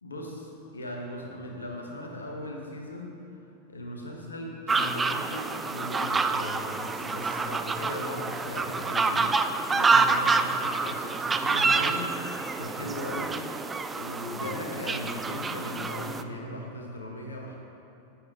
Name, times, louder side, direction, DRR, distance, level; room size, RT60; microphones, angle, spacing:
voice 1, 0.0-3.2 3.7-9.4 9.7-13.4 13.9-17.5, left 1 dB, 75° left, 0 dB, 1.2 m, -38 dB
sound 1, 4.7-16.2, right 4 dB, 15° right, 0.3 m, -27 dB
9.1 x 7.5 x 3.8 m, 2.9 s
figure-of-eight pair, 90°, 0 cm